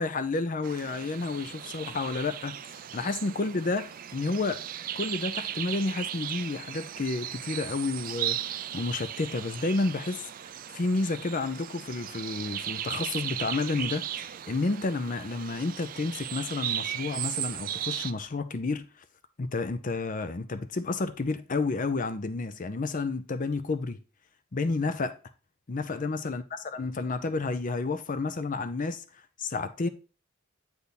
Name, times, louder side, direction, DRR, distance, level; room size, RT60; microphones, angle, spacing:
voice 1, 0.0-4.7 5.0-10.2 10.7-18.9 19.4-24.0 24.5-25.2 25.7-26.4 26.7-29.0 29.4-29.9, left 3 dB, 40° left, 0.6 m, -30 dB
sound 1, 0.6-18.1, right 11 dB, 45° right, 0.3 m, -36 dB
8.2 x 3.5 x 4.1 m
head